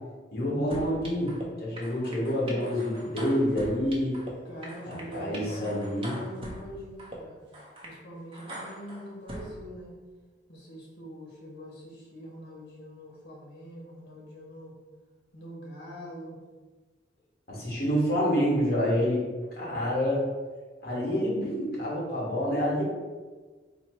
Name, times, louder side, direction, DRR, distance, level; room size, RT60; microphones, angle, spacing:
voice 1, 0.3-4.2 4.9-6.1 17.5-19.2 19.6-20.2 20.8-22.8, equal, 55° left, -5 dB, 1.4 m, -27 dB
sound 1, 0.7-1.4 1.8-4.3 4.6-6.6 7.0-7.2 7.5-7.9 8.3-9.5, right 1 dB, 30° right, 0.6 m, -41 dB
voice 2, 4.4-5.9 6.1-7.4 7.8-9.9 10.5-14.7 15.3-16.4, equal, 75° left, -3 dB, 1.1 m, -43 dB
4.0 x 2.0 x 4.5 m, 1.4 s
head